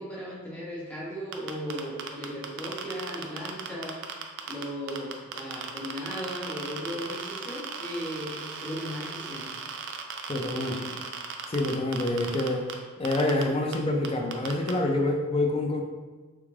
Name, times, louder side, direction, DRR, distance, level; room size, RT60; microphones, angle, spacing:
voice 1, 0.0-4.0 4.4-9.4 10.4-11.0, equal, 5° left, -7 dB, 0.8 m, -37 dB
sound 1, 1.3-4.6 4.9-12.7 13.0-13.4 13.7-13.8 14.0-14.7, right 7 dB, 60° right, 0.4 m, -36 dB
voice 2, 10.3-10.7 11.5-12.7 13.0-15.8, left 2 dB, 25° left, 2 dB, 0.4 m, -27 dB
3.4 x 2.4 x 3.2 m, 1.3 s
head